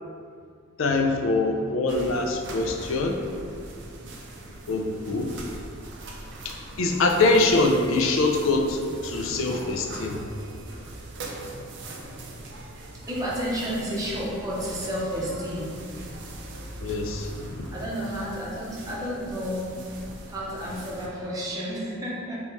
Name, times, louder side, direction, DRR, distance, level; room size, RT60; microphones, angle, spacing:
voice 1, 0.8-3.2 4.7-5.3 6.4-10.2 16.8-17.7, left 3 dB, 65° left, 3 dB, 0.5 m, -24 dB
sound 1, 1.9-21.1, right 1 dB, 60° right, 0.5 m, -41 dB
voice 2, 13.1-15.7 16.0-16.1 17.7-19.8 20.3-22.4, equal, 15° right, -6 dB, 0.7 m, -31 dB
3.7 x 3.0 x 4.0 m, 2.2 s
head